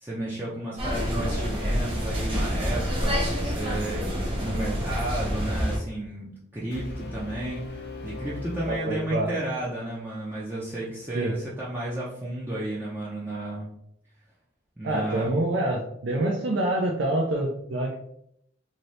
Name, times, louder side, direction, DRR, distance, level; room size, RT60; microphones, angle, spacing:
voice 1, 0.0-13.7 14.8-15.3, right 1 dB, 10° right, -7 dB, 0.5 m, -33 dB
sound 1, 0.8-5.8, equal, 30° right, 1.0 m, -27 dB
Brass instrument, 6.7-9.8, left 3 dB, 55° left, 0.6 m, -39 dB
voice 2, 8.7-9.3 11.1-11.3 14.8-18.0, right 1 dB, 70° right, 0 dB, 0.5 m, -26 dB
2.7 x 2.7 x 3.1 m, 0.73 s
head